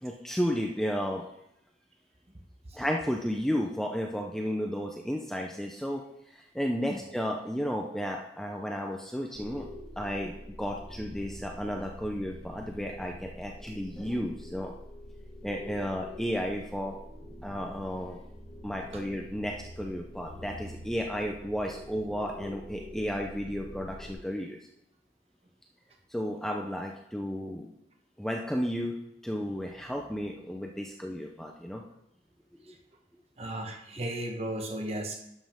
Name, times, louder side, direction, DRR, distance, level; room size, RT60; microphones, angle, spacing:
voice 1, 0.0-1.3 2.7-9.7 10.0-14.7 15.4-17.0 17.4-18.2 18.6-24.6 26.1-27.7 28.2-28.9 29.2-31.8 32.7-32.8 34.0-34.1, equal, ahead, 1 dB, 0.6 m, -33 dB
sound 1, 9.3-24.1, left 1 dB, 20° left, 2.2 m, -46 dB
voice 2, 33.4-35.2, right 1 dB, 35° right, 3 dB, 1.2 m, -34 dB
11.5 x 7.4 x 3.6 m, 0.80 s
head